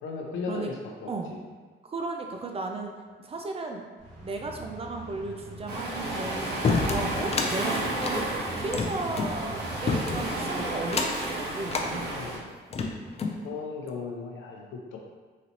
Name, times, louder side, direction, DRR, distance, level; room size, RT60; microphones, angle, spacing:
voice 1, 0.0-1.4 12.1-12.5 13.4-15.0, left 4 dB, 80° left, 0 dB, 0.7 m, -36 dB
voice 2, 1.9-2.9 3.2-3.8 4.2-8.2 8.5-11.9, right 3 dB, 30° right, 3 dB, 0.5 m, -35 dB
sound 1, 4.0-10.8, right 1 dB, 80° right, 1.4 m, -45 dB
Waves surf, 5.7-12.4, right 1 dB, 55° right, 1.3 m, -32 dB
sound 2, 6.6-7.5 7.9-9.3 9.9-10.4 10.8-11.3 11.7-11.9 12.5-13.4, left 4 dB, 30° left, 0.4 m, -28 dB
4.0 x 3.1 x 2.9 m, 1.4 s
cardioid pair, 90°, 20 cm